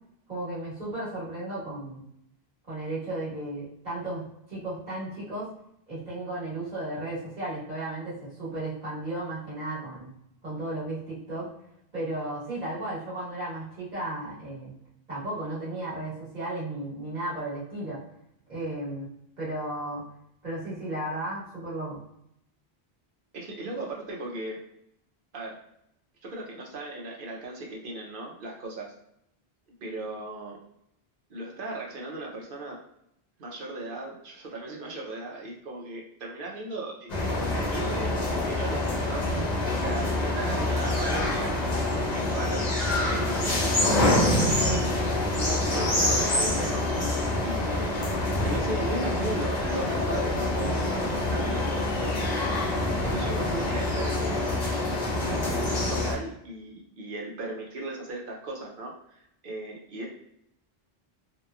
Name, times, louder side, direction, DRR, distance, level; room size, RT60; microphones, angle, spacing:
voice 1, 0.3-2.0 2.7-5.5 5.9-10.1 10.4-11.5 11.9-14.7 15.1-18.0 18.5-19.1 19.4-20.0 20.4-22.0, right 1 dB, 45° right, -8 dB, 1.4 m, -34 dB
voice 2, 23.3-24.6 25.3-25.6 26.2-28.9 29.8-30.6 31.3-32.8 33.4-39.2 39.7-42.6 43.1-44.9 45.4-46.9 47.4-48.0 48.4-52.1 53.0-54.5 55.2-60.1, right 2 dB, 65° right, -1 dB, 0.8 m, -37 dB
sound 1, 37.1-56.1, left 1 dB, 45° left, 0.8 m, -26 dB
2.9 x 2.1 x 2.3 m, 0.76 s
omnidirectional pair, 1.0 m